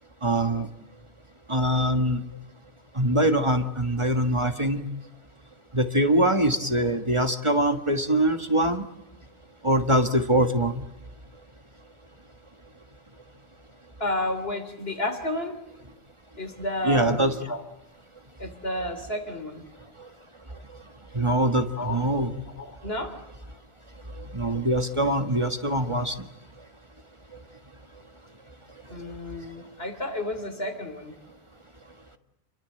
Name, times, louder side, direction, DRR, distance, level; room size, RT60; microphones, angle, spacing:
voice 1, 0.2-0.7 1.5-2.2 3.0-4.8 5.7-8.8 9.6-10.8 16.9-17.3 21.2-22.3 24.3-26.1, right 1 dB, 30° right, 7 dB, 1.6 m, -23 dB
voice 2, 14.0-15.6 16.4-17.6 18.4-19.7 21.8-22.0 22.6-23.1 25.9-26.0 28.9-31.1, left 1 dB, 70° left, 8 dB, 3.5 m, -31 dB
28.5 x 23.0 x 7.8 m, 0.88 s
omnidirectional pair, 1.1 m